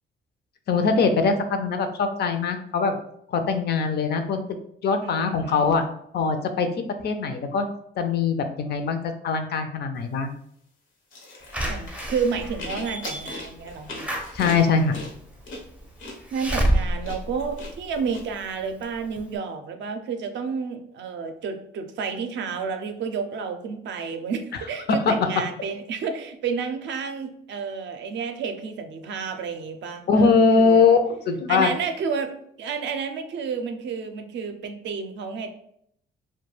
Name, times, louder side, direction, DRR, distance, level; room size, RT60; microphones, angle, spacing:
voice 1, 0.7-3.0 3.3-4.4 4.8-5.9 6.1-6.7 7.0-7.7 8.0-10.3 14.3-14.9 24.9-25.1 30.1-31.7, left 4 dB, 55° left, 7 dB, 0.4 m, -22 dB
voice 2, 5.0-5.9 11.7-14.0 16.3-30.8 31.5-32.3 32.6-35.5, right 5 dB, 65° right, 6 dB, 0.4 m, -30 dB
sound 1, 11.1-18.2, left 2 dB, 85° left, 0.8 m, -39 dB
Slam / Alarm, 11.5-18.3 18.8-18.9 19.2-19.3, right 1 dB, 5° right, 0.4 m, -29 dB
2.3 x 2.2 x 3.1 m, 0.71 s
cardioid pair, 90°, 20 cm